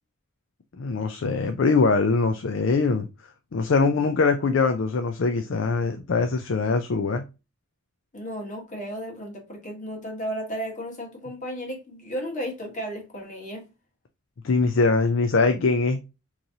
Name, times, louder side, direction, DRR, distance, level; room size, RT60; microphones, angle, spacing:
voice 1, 0.8-3.1 3.5-7.2 14.4-16.0, left 4 dB, 65° left, 0.4 m, -22 dB
voice 2, 8.1-13.6, equal, 35° left, 1.3 m, -34 dB
3.9 x 3.0 x 2.7 m
head